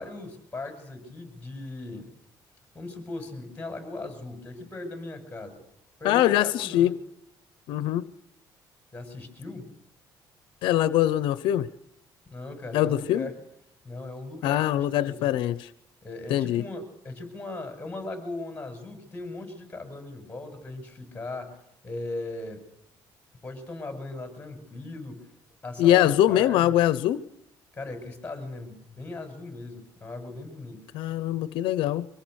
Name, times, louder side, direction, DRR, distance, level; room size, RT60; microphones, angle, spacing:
voice 1, 0.0-2.1 2.7-5.6 6.0-6.9 8.9-9.8 12.3-13.3 13.8-15.4 16.0-22.6 23.4-25.3 25.6-26.7 27.7-30.8, left 2 dB, 15° left, 6.3 m, -38 dB
voice 2, 6.0-6.9 7.7-8.1 10.6-11.7 12.7-13.3 14.4-15.7 16.3-16.7 25.8-27.2 30.9-32.1, left 13 dB, 85° left, 0.8 m, -23 dB
25.5 x 18.5 x 6.5 m
cardioid pair, 125°, 8 cm